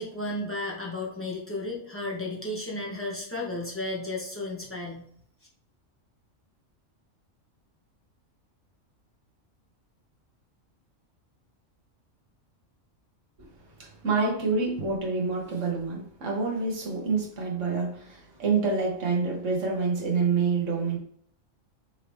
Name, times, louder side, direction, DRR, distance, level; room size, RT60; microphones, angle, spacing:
voice 1, 0.0-5.1, left 2 dB, 10° left, -4 dB, 0.9 m, -33 dB
voice 2, 13.8-21.0, right 4 dB, 70° right, -1 dB, 1.5 m, -27 dB
5.5 x 2.8 x 3.3 m, 0.65 s
omnidirectional pair, 1.4 m